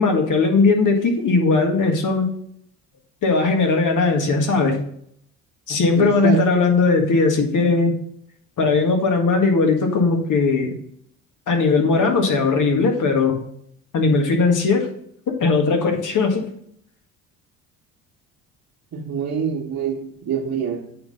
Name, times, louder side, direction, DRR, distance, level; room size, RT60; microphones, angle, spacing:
voice 1, 0.0-2.3 3.2-4.8 5.7-7.9 8.6-10.8 11.5-13.4 13.9-14.9 15.3-16.4, left 4 dB, 50° left, 3 dB, 1.8 m, -18 dB
voice 2, 5.9-6.4 18.9-20.8, right 7 dB, 45° right, -5 dB, 1.7 m, -25 dB
8.9 x 3.7 x 5.5 m, 0.69 s
hypercardioid pair, 65°, 39 cm